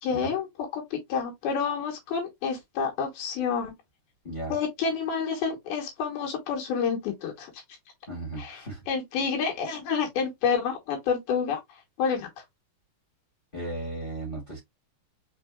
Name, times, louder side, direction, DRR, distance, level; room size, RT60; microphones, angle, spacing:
voice 1, 0.0-0.5 0.7-3.7 4.5-7.5 8.4-8.6 8.9-11.6 12.0-12.3, left 6 dB, 80° left, 3.0 m, -28 dB
voice 2, 8.1-8.8 13.5-14.6, right 2 dB, 25° left, 1.2 m, -35 dB
5.4 x 3.9 x 2.3 m
omnidirectional pair, 4.4 m